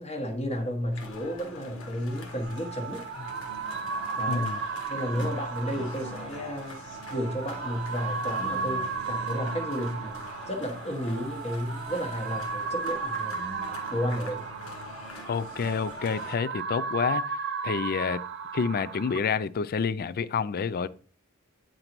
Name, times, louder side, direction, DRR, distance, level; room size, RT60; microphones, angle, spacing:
voice 1, 0.0-3.0 4.2-4.5 4.9-6.8 7.1-13.4 13.9-14.5, equal, 30° left, 1.1 m, -32 dB
sound 1, 0.9-16.3, left 2 dB, 75° left, 1.7 m, -43 dB
sound 2, 2.2-19.2, right 5 dB, 55° right, 0.7 m, -35 dB
voice 2, 4.3-4.6 5.2-5.3 15.3-17.2 17.6-18.2 18.5-20.9, left 6 dB, 45° left, 0.4 m, -28 dB
9.0 x 3.9 x 4.5 m
head